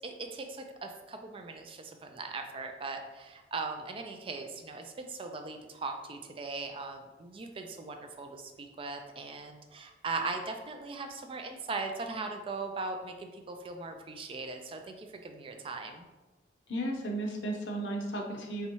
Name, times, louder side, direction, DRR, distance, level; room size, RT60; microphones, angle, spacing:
voice 1, 0.0-16.1, right 3 dB, 30° right, 5 dB, 0.3 m, -39 dB
voice 2, 16.7-18.7, right 1 dB, 80° left, 2 dB, 0.7 m, -34 dB
4.2 x 3.5 x 3.0 m, 1.2 s
head